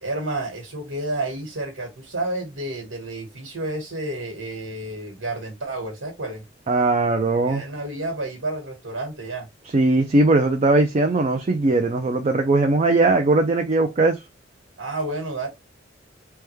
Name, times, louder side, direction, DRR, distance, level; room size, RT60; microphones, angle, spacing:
voice 1, 0.0-6.4 7.4-9.5 14.8-15.5, right 2 dB, 85° right, 1.4 m, -30 dB
voice 2, 6.7-7.6 9.7-14.2, right 2 dB, 35° right, 0.4 m, -19 dB
3.4 x 2.2 x 3.1 m
head